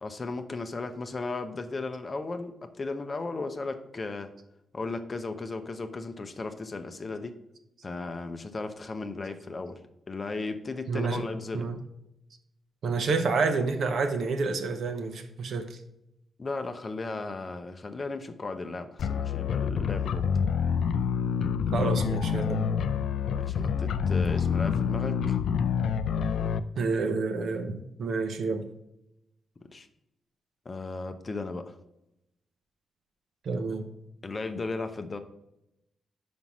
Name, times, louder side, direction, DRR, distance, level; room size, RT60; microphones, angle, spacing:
voice 1, 0.0-4.3 4.7-7.3 7.8-9.8 10.1-11.7 16.4-20.3 23.4-25.4 29.7-29.9 30.7-31.8 34.2-35.2, left 3 dB, 25° left, 8 dB, 0.6 m, -35 dB
voice 2, 10.9-11.2 11.5-11.8 12.8-15.8 21.7-22.7 26.8-28.7 33.4-33.9, right 4 dB, 65° right, 7 dB, 0.8 m, -29 dB
sound 1, 19.0-26.6, left 7 dB, 80° left, 0.4 m, -27 dB
5.6 x 5.2 x 5.9 m, 0.85 s
wide cardioid pair, 165°, 0 cm